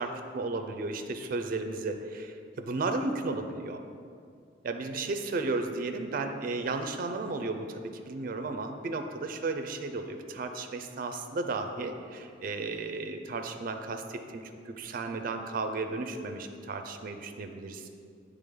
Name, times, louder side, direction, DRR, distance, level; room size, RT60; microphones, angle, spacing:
voice 1, 0.0-3.8 4.6-17.9, right 3 dB, 50° right, 6 dB, 0.4 m, -34 dB
8.5 x 3.4 x 3.7 m, 2.3 s
head